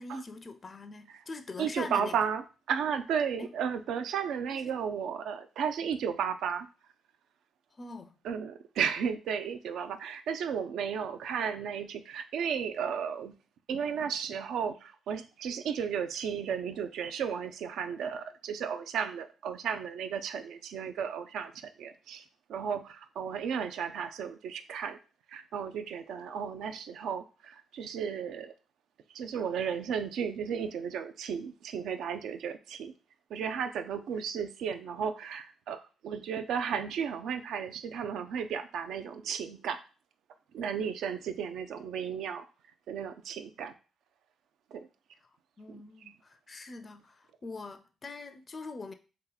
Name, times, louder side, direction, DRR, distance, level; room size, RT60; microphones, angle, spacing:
voice 1, 0.0-2.2 3.4-3.5 4.5-4.6 7.8-8.1 45.6-48.9, left 3 dB, 35° left, 0.4 m, -43 dB
voice 2, 1.6-6.7 8.2-13.3 13.7-22.2 22.5-25.0 25.3-28.5 29.1-32.9 33.3-39.8 40.5-42.5 42.9-43.7 44.7-44.9 45.7-45.8, right 7 dB, 75° right, 0.4 m, -34 dB
3.5 x 2.8 x 3.9 m
cardioid pair, 90°, 0 cm